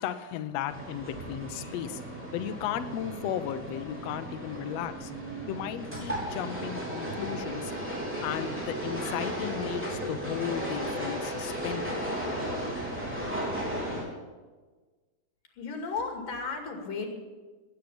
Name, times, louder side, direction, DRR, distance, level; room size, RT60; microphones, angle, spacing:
voice 1, 0.0-2.0 2.3-5.1 5.5-7.7 8.2-12.2, left 10 dB, 85° left, 9 dB, 1.4 m, -35 dB
sound 1, 0.7-14.0, equal, 5° right, 3.6 m, -35 dB
voice 2, 15.5-17.1, left 4 dB, 70° left, 3 dB, 4.0 m, -34 dB
19.5 x 9.2 x 7.1 m, 1.3 s
omnidirectional pair, 4.2 m